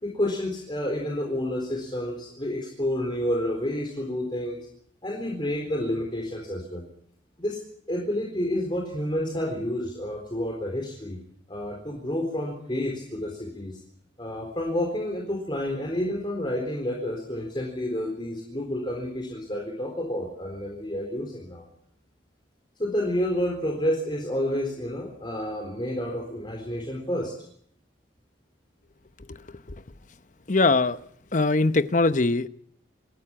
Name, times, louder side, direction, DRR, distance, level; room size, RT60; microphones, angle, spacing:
voice 1, 0.0-4.6 5.0-6.8 7.4-7.6 7.9-11.2 11.5-13.8 14.2-21.7 22.8-27.3, left 1 dB, 25° left, 1 dB, 4.0 m, -29 dB
voice 2, 29.3-29.8 30.5-31.0 31.3-32.5, left 3 dB, 40° left, 12 dB, 0.8 m, -22 dB
26.0 x 13.5 x 10.0 m, 0.66 s
head